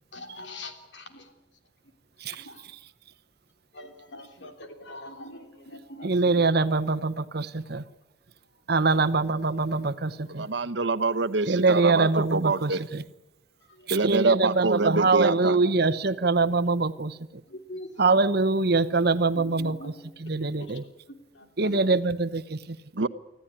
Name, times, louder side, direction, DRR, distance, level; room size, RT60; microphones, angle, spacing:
voice 1, 0.1-1.3 2.4-2.6 3.7-6.1 8.9-9.0 13.7-13.9 15.4-15.5 17.5-17.9 19.3-19.9 20.6-20.7 21.3-21.9, left 1 dB, 75° left, 5 dB, 3.3 m, -42 dB
voice 2, 2.2-2.5 6.0-7.8 8.7-10.5 11.5-13.0 13.9-17.2 18.0-19.9 20.2-20.8 21.6-22.8, right 3 dB, 60° right, 14 dB, 1.0 m, -24 dB
voice 3, 10.3-12.8 13.9-15.6 22.9-23.1, right 3 dB, 85° right, 11 dB, 1.0 m, -26 dB
25.5 x 14.5 x 9.9 m, 1.0 s
head